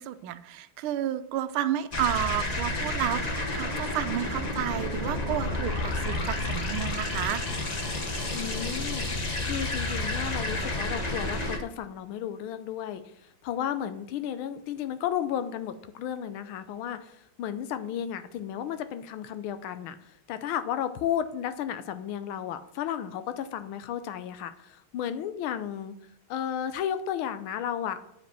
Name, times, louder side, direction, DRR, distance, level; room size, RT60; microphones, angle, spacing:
voice 1, 0.0-7.4, right 12 dB, 90° right, 12 dB, 1.5 m, -31 dB
sound 1, 1.9-11.6, left 2 dB, 40° left, 0.6 m, -30 dB
voice 2, 8.3-9.1 9.4-13.0 13.4-25.9 26.3-28.0, left 9 dB, 80° left, 11 dB, 1.5 m, -33 dB
7.9 x 5.0 x 6.7 m, 0.78 s
omnidirectional pair, 2.3 m